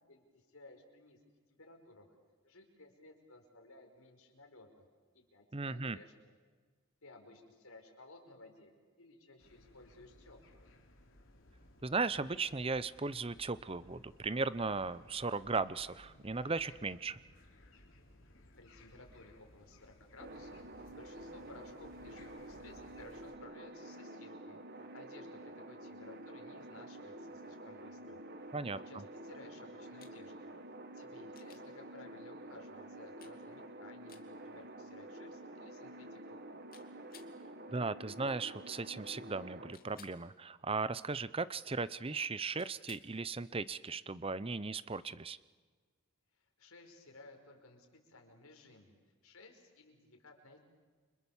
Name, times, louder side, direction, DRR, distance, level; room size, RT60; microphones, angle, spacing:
voice 1, 0.1-1.2 1.5-2.1 2.4-4.9 5.1-6.3 7.0-8.7 9.0-10.7 18.6-28.2 28.9-30.5 30.9-36.4 46.4-48.9 49.2-50.6, left 2 dB, 85° left, 4 dB, 5.2 m, -57 dB
voice 2, 5.5-6.0 11.8-17.2 28.5-29.0 37.7-45.4, right 4 dB, 25° right, 16 dB, 0.7 m, -37 dB
sound 1, 9.4-23.3, left 1 dB, 60° left, 4.2 m, -61 dB
sound 2, 20.2-39.7, right 1 dB, 50° right, 1.7 m, -49 dB
sound 3, 30.0-30.2 31.3-31.7 33.2-33.4 34.1-34.3 36.7-37.3 39.7-40.2 42.6-43.1 45.4-45.5, left 9 dB, 45° left, 2.4 m, -58 dB
29.5 x 26.0 x 7.3 m, 1.5 s
head